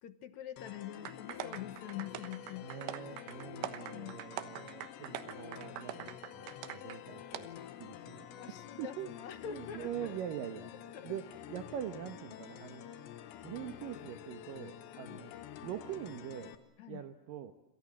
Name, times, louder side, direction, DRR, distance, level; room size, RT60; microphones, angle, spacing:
voice 1, 0.0-2.7 3.6-4.2 8.4-10.2 10.9-11.1 14.9-15.2 16.8-17.0, left 10 dB, 70° left, 11 dB, 1.7 m, -45 dB
sound 1, 0.6-16.6, left 11 dB, 85° left, 3.8 m, -49 dB
sound 2, 1.0-7.0 7.3-7.4, right 12 dB, 85° right, 3.5 m, -43 dB
voice 2, 2.6-7.5 7.8-8.4 8.8-9.1 9.5-12.9 13.4-15.3 15.6-16.5 16.9-17.5, right 10 dB, 65° right, 8 dB, 2.4 m, -43 dB
28.0 x 27.5 x 7.5 m, 0.98 s
omnidirectional pair, 5.0 m